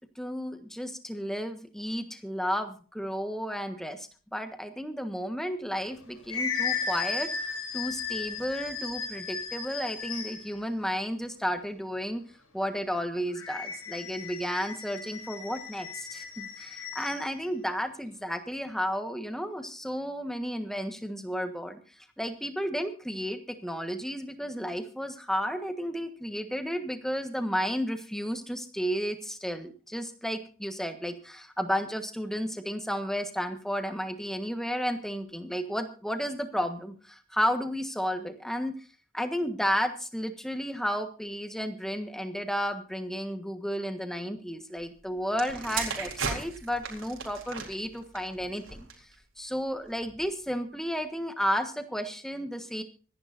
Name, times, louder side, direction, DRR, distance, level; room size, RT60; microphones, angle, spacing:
voice 1, 0.2-12.2 12.5-21.8 22.2-38.7 39.1-48.9 49.4-52.8, equal, ahead, 7 dB, 1.4 m, -32 dB
sound 1, 5.8-10.6 13.3-17.3, left 6 dB, 90° left, 8.0 m, -35 dB
sound 2, 45.3-49.1 49.9-50.2, right 5 dB, 70° right, 3.9 m, -36 dB
25.5 x 11.0 x 2.6 m, 0.38 s
head